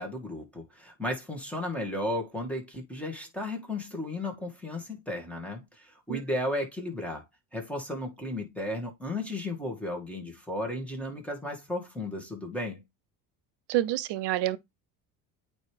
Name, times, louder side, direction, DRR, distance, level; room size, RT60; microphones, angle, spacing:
voice 1, 0.0-7.3 7.5-12.8, left 1 dB, 5° left, 2.1 m, -34 dB
voice 2, 13.7-14.6, right 14 dB, 60° right, 0.8 m, -27 dB
8.8 x 3.2 x 3.4 m
supercardioid pair, 90°, 48 cm